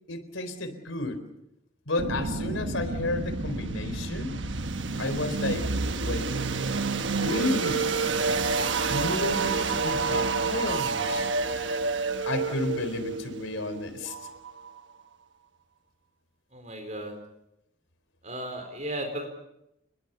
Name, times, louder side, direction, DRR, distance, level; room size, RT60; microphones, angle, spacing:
voice 1, 0.1-1.2 1.9-4.3 5.0-5.7 6.0-6.3 7.0-7.9 8.9-11.3 12.3-14.1, left 2 dB, 90° left, 10 dB, 4.0 m, -32 dB
sound 1, 2.0-14.8, right 4 dB, 70° right, 1.2 m, -29 dB
voice 2, 16.5-17.1 18.2-19.3, right 1 dB, 35° right, 4 dB, 4.3 m, -35 dB
29.0 x 21.5 x 6.9 m, 0.84 s
head